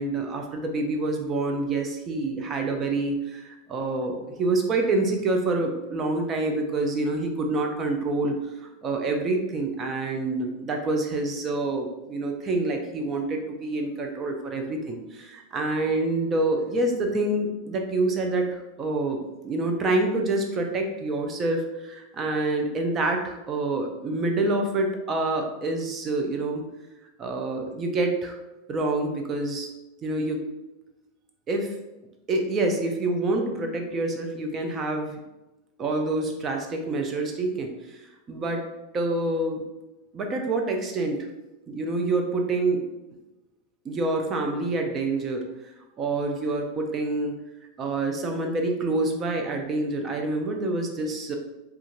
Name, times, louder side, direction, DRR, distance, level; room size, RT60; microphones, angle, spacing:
voice 1, 0.0-26.6 27.2-28.4 28.7-29.7 30.0-30.5 31.5-31.7 32.3-35.2 35.8-39.6 40.1-41.3 41.7-42.8 43.8-45.5 46.0-47.3 47.8-51.4, right 2 dB, 30° right, 3 dB, 0.4 m, -27 dB
2.4 x 2.3 x 2.9 m, 0.99 s
hypercardioid pair, 110°, 0 cm